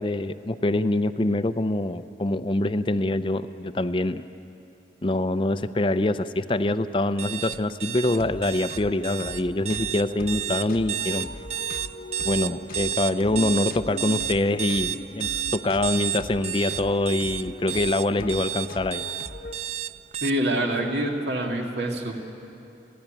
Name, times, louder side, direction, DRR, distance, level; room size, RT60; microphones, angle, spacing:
voice 1, 0.0-4.2 5.0-11.3 12.2-19.0, left 2 dB, 30° left, 12 dB, 0.5 m, -25 dB
sound 1, 7.2-20.3, right 10 dB, 35° right, 0.4 m, -31 dB
sound 2, 8.2-19.6, left 2 dB, 55° left, 0.8 m, -40 dB
voice 2, 20.2-22.1, right 1 dB, 75° right, 1 dB, 2.4 m, -26 dB
30.0 x 11.0 x 9.0 m, 2.8 s
head